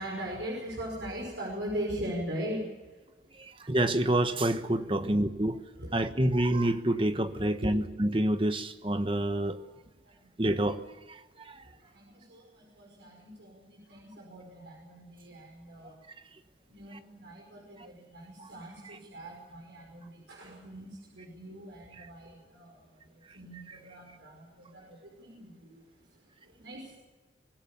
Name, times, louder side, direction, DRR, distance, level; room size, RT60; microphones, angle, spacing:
voice 1, 0.0-2.9 4.9-5.0 5.8-6.0 6.3-6.4 7.4-7.8 10.0-10.5 11.3-16.0 16.7-26.9, equal, 75° right, -2 dB, 5.5 m, -41 dB
voice 2, 3.4-5.6 5.9-9.6 10.4-10.8 11.1-11.7 18.4-18.5, right 1 dB, 30° right, 9 dB, 1.2 m, -28 dB
25.0 x 16.5 x 6.9 m, 1.2 s
head